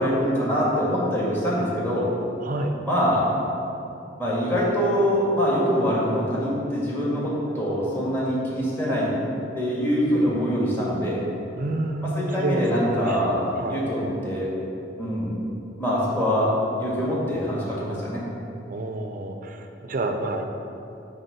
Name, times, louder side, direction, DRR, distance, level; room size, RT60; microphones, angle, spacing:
voice 1, 0.0-2.1 2.8-3.3 4.2-9.1 9.5-11.2 12.1-14.5 15.0-15.3 15.8-16.5 16.8-18.2, equal, 10° left, -7 dB, 1.8 m, -24 dB
voice 2, 2.4-2.7 11.6-13.3 13.6-13.8 18.7-20.4, right 2 dB, 45° right, 5 dB, 0.6 m, -29 dB
8.7 x 3.5 x 6.9 m, 2.7 s
head